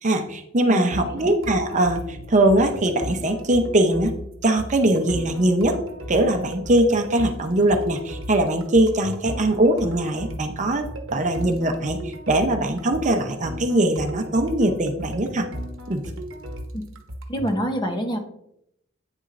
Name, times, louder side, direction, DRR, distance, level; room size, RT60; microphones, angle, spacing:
voice 1, 0.0-4.1 4.4-5.8 6.1-15.5 15.9-16.0, right 1 dB, 40° right, 6 dB, 0.7 m, -21 dB
voice 2, 0.7-1.3 16.7-16.8 17.3-18.2, equal, 25° left, 5 dB, 0.9 m, -27 dB
sound 1, 0.9-17.6, equal, 80° right, 1.0 m, -35 dB
9.0 x 7.1 x 2.6 m, 0.78 s
head